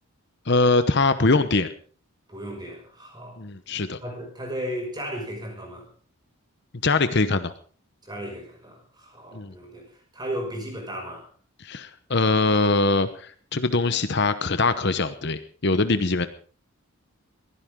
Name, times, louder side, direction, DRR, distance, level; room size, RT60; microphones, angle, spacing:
voice 1, 0.5-1.7 3.4-4.0 6.8-7.5 9.3-9.5 11.6-16.3, left 3 dB, 50° left, 11 dB, 1.0 m, -22 dB
voice 2, 2.3-3.4 4.0-5.9 8.0-11.3, equal, 20° right, 2 dB, 5.8 m, -35 dB
22.0 x 15.5 x 3.7 m, 0.41 s
head